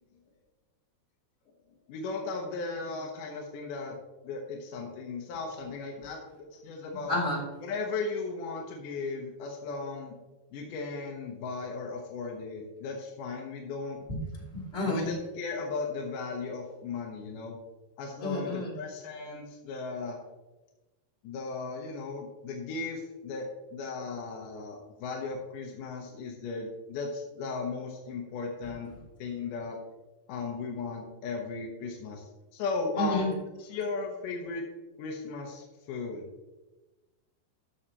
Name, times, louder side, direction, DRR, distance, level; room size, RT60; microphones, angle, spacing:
voice 1, 1.9-4.0 4.2-7.2 7.6-10.2 10.5-14.0 14.8-17.6 18.0-20.2 21.2-23.5 23.7-28.9 29.2-29.8 30.3-32.3 32.5-33.3 33.6-34.6 35.0-36.3, left 4 dB, 75° left, 1 dB, 1.9 m, -36 dB
voice 2, 7.1-7.4 14.1-14.2 14.5-15.1 18.2-18.7 33.0-33.3, left 1 dB, 20° left, -6 dB, 2.3 m, -30 dB
15.5 x 6.4 x 2.9 m, 1.1 s
omnidirectional pair, 4.9 m